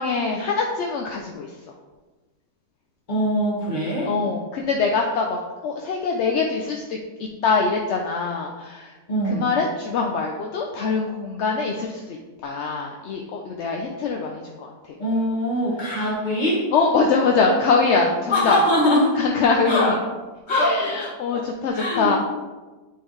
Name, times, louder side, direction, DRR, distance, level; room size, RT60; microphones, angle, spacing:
voice 1, 0.0-1.5 4.1-7.0 7.4-8.9 9.3-12.2 12.4-14.7 16.7-18.6 19.2-20.0 20.5-22.2, left 4 dB, 65° left, 1 dB, 0.8 m, -23 dB
voice 2, 3.1-4.1 9.1-9.5 15.0-16.7 18.3-19.2 19.7-20.0 20.5-21.5 21.7-22.1, equal, 30° left, -4 dB, 1.7 m, -22 dB
9.4 x 3.8 x 3.2 m, 1.2 s
omnidirectional pair, 1.6 m